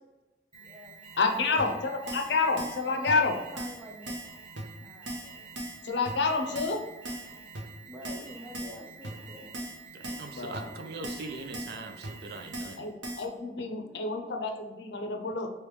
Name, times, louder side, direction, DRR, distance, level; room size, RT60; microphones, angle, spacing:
Alarm, 0.5-12.9, right 5 dB, 30° right, 0.9 m, -49 dB
voice 1, 0.6-1.8 2.9-4.1 4.8-5.6 7.1-7.2 7.9-9.5, equal, 10° right, -1 dB, 0.5 m, -46 dB
voice 2, 1.2-3.4 5.8-6.8 10.3-10.7 12.8-15.5, left 4 dB, 65° left, 4 dB, 0.5 m, -29 dB
Keyboard (musical), 1.6-1.7 2.1-2.3 2.6-2.8 3.1-3.2 3.6-3.8 4.1-4.3 4.6-4.7 5.1-5.3 5.6-5.8 6.1-6.2 6.6-6.8 7.1-7.3 7.5-7.6 8.0-8.3 8.5-8.8 9.0-9.1 9.5-9.8 10.0-10.3 10.5-10.6 11.0-11.3 11.5-11.8 12.0-12.1 12.5-12.8 13.0-13.3, right 1 dB, 75° right, 0.8 m, -37 dB
voice 3, 9.9-12.9, right 3 dB, 60° right, 6 dB, 0.4 m, -41 dB
3.2 x 3.0 x 3.1 m, 1.1 s
head